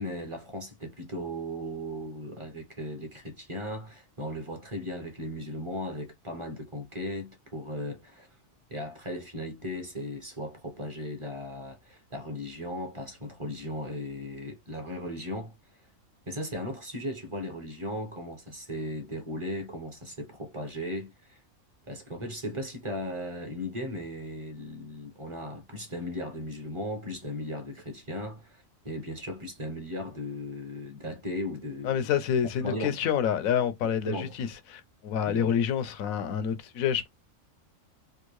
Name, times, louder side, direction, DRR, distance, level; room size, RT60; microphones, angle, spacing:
voice 1, 0.0-8.3 8.7-15.5 16.3-21.4 21.9-32.1 32.6-33.0 34.0-34.3 35.2-35.5, equal, 25° right, 0.8 m, -37 dB
voice 2, 31.8-37.1, left 8 dB, 85° left, 1.1 m, -28 dB
3.6 x 2.5 x 3.1 m
omnidirectional pair, 1.4 m